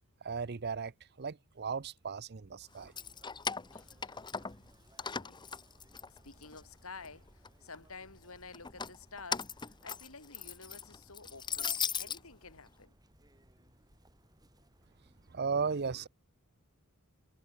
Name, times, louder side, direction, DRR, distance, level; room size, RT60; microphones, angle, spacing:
voice 1, 0.2-0.9 1.2-2.9 15.3-16.1, right 5 dB, 50° right, 0.7 m, -35 dB
Keys jangling, 2.8-4.7 5.0-6.6 7.0-7.8 8.5-12.2, left 6 dB, 20° left, 0.8 m, -38 dB
Chirp tweet, 2.8-15.3, right 1 dB, 20° right, 5.3 m, -64 dB
voice 2, 3.7-4.2 5.0-5.4 6.1-9.5 9.8-12.9, left 4 dB, 70° left, 4.8 m, -51 dB
head